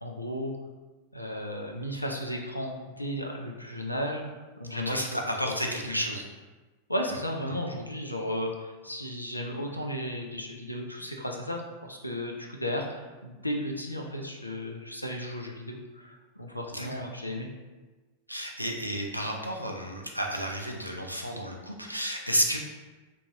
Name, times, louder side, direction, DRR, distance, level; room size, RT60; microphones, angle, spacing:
voice 1, 0.0-0.5 1.1-4.2 4.6-5.0 5.4-5.5 5.8-6.0 6.9-17.5, equal, 85° left, 1 dB, 0.3 m, -34 dB
voice 2, 4.6-6.2 16.7-17.1 18.3-22.6, equal, 90° right, 1 dB, 0.3 m, -31 dB
2.8 x 2.2 x 2.6 m, 1.2 s
figure-of-eight pair, 90°, 0 cm